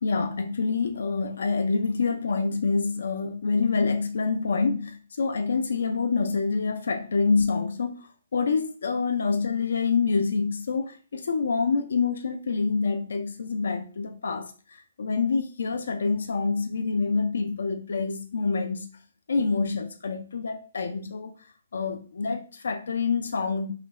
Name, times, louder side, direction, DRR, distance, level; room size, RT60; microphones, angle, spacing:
voice 1, 0.0-18.9 19.3-21.3 21.7-23.7, left 4 dB, 80° left, 0.5 m, -26 dB
3.7 x 2.1 x 4.2 m
hypercardioid pair, 160°, 0 cm